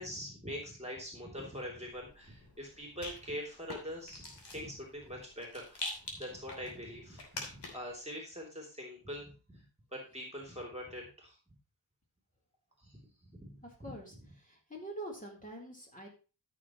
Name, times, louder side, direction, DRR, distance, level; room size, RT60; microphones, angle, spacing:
voice 1, 0.0-9.6 9.9-11.4 12.8-13.9, equal, 15° right, 0 dB, 3.0 m, -44 dB
Rattle, 1.9-8.0, left 2 dB, 60° left, 3.1 m, -46 dB
voice 2, 13.6-16.1, right 1 dB, 15° left, -1 dB, 3.7 m, -45 dB
13.5 x 6.5 x 3.1 m, 0.33 s
wide cardioid pair, 85°, 46 cm